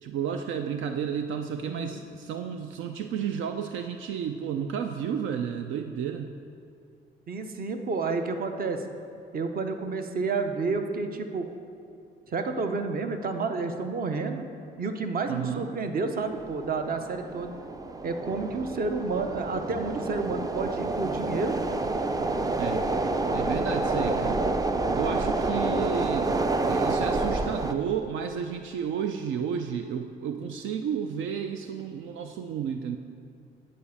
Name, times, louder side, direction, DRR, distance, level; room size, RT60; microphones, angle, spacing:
voice 1, 0.0-6.3 15.3-15.7 22.6-22.9 23.3-24.5 24.9-26.3 26.7-33.0, right 7 dB, 75° right, 7 dB, 0.4 m, -32 dB
voice 2, 1.7-2.0 7.3-8.8 9.3-11.5 12.3-14.5 14.8-17.5 18.0-21.6, right 4 dB, 45° right, 7 dB, 0.8 m, -30 dB
sound 1, 16.2-27.7, right 2 dB, 20° right, 0.4 m, -28 dB
9.2 x 4.3 x 7.1 m, 2.4 s
cardioid pair, 90°, 20 cm